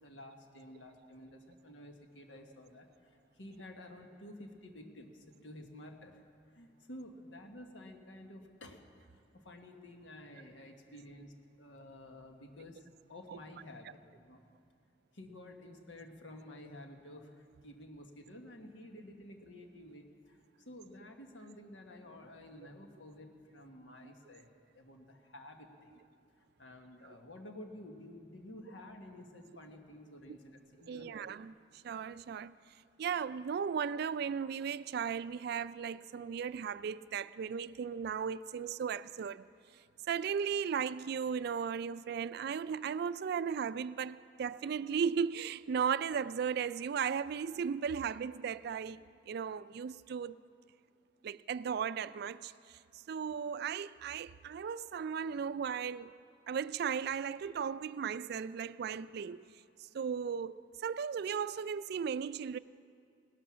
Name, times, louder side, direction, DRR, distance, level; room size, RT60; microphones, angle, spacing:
voice 1, 0.0-6.2 6.5-8.8 9.1-14.4 15.1-26.0 26.4-31.2, left 1 dB, 85° left, 1.5 m, -52 dB
voice 2, 30.9-32.5 33.0-39.5 40.1-50.4 51.2-52.8 53.1-56.1 56.5-59.5 59.9-62.6, right 7 dB, 60° right, 0.3 m, -36 dB
18.0 x 11.5 x 6.2 m
head